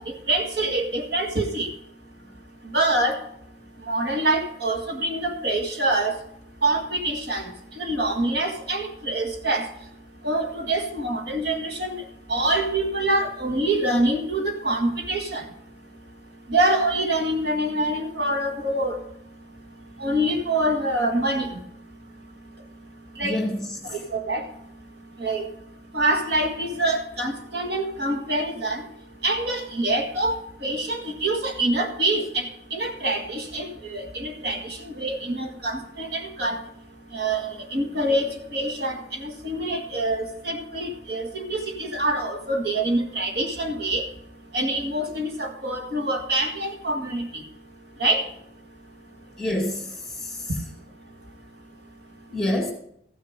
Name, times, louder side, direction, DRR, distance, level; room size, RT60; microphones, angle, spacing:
voice 1, 0.0-1.7 2.7-3.2 3.9-6.2 6.6-7.4 7.8-9.7 10.2-12.0 12.3-15.4 16.5-19.0 20.0-21.6 23.2-23.4 23.9-24.4 25.2-25.4 25.9-28.8 29.2-30.4 30.6-36.6 37.1-44.0 44.5-47.4 48.0-48.2, right 1 dB, 70° right, 3 dB, 1.7 m, -25 dB
voice 2, 23.2-23.8 49.4-50.5 52.3-52.7, left 1 dB, 5° left, 2 dB, 2.0 m, -27 dB
14.5 x 6.5 x 5.0 m, 0.70 s
head